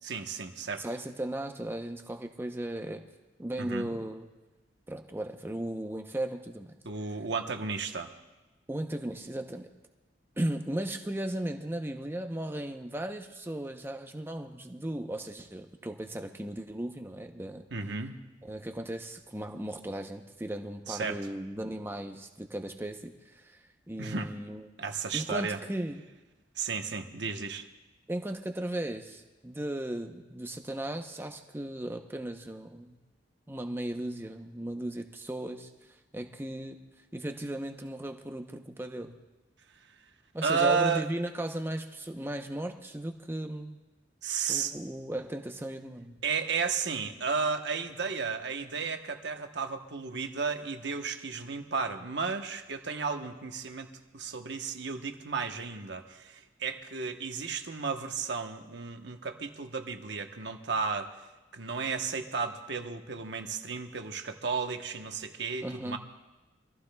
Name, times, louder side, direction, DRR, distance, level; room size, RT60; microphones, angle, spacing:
voice 1, 0.0-0.8 3.6-3.9 6.8-8.1 17.7-18.2 20.9-21.2 24.0-24.3 24.8-25.6 26.6-27.7 40.4-41.1 44.2-44.7 46.2-61.1 61.5-66.0, right 5 dB, 65° right, 5 dB, 1.0 m, -33 dB
voice 2, 0.8-3.0 3.4-4.3 4.9-6.7 8.7-9.7 10.4-17.6 18.4-23.6 23.9-24.7 25.1-26.0 28.1-33.0 33.5-35.7 36.1-36.8 37.1-39.1 40.3-43.8 44.5-46.2 65.6-66.0, right 1 dB, 10° right, 5 dB, 0.7 m, -36 dB
25.0 x 15.0 x 2.3 m, 1.1 s
head